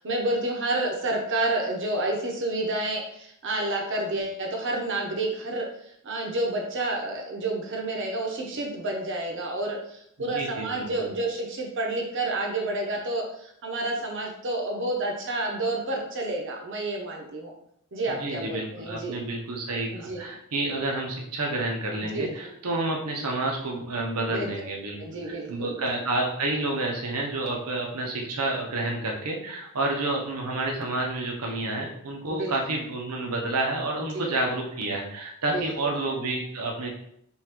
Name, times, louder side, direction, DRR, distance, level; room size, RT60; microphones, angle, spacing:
voice 1, 0.0-5.7 6.0-17.5 17.9-19.2 19.9-20.2 22.0-22.3 24.3-24.5 25.0-25.9 32.3-32.5 34.1-34.4 35.5-35.9, right 2 dB, 60° right, 1 dB, 0.9 m, -29 dB
voice 2, 10.2-11.1 18.1-25.0 25.2-36.9, right 2 dB, 85° right, 0 dB, 1.0 m, -29 dB
5.5 x 2.6 x 3.0 m, 0.72 s
head